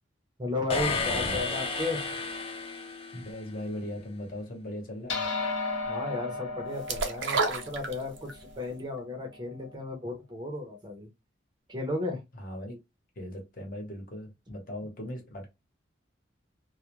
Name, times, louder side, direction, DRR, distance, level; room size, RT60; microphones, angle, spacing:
voice 1, 0.4-2.1 5.9-11.1 11.7-12.2, left 2 dB, 25° right, 0.6 m, -34 dB
sound 1, 0.7-3.5, left 3 dB, 30° left, 0.4 m, -32 dB
voice 2, 3.1-5.3 12.4-12.8 13.2-15.5, left 1 dB, 45° left, 0.9 m, -39 dB
sound 2, 5.1-9.8, left 3 dB, 75° left, 0.8 m, -35 dB
sound 3, 6.9-8.4 8.8-8.9, right 4 dB, 80° right, 0.6 m, -29 dB
2.3 x 2.1 x 2.9 m
head